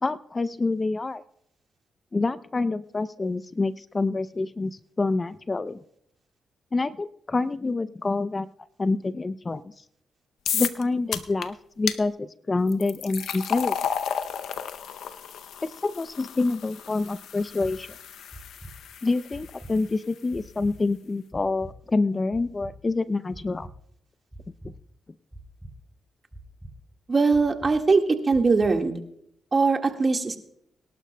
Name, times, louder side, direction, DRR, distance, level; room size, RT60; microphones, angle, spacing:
voice 1, 0.0-1.2 2.1-5.8 6.7-8.5 8.8-9.7 10.5-13.8 15.8-17.9 19.0-23.7, left 3 dB, 35° left, 15 dB, 0.5 m, -27 dB
sound 1, 10.5-10.8 11.1-11.5 11.9-12.0 12.7-19.8, left 8 dB, 85° left, 0.6 m, -33 dB
sound 2, 17.4-17.7 18.3-18.7 19.3-19.7 20.3-20.7 21.3-21.7 22.3-22.7 23.3-23.7 24.3-24.7 25.3-25.7 26.3-26.7 27.3-27.7 28.3-28.7, right 1 dB, 10° right, 3.2 m, -43 dB
voice 2, 27.1-28.9 29.5-30.4, right 4 dB, 40° right, 4 dB, 1.6 m, -21 dB
23.5 x 12.0 x 2.2 m, 0.73 s
cardioid pair, 60°, 0 cm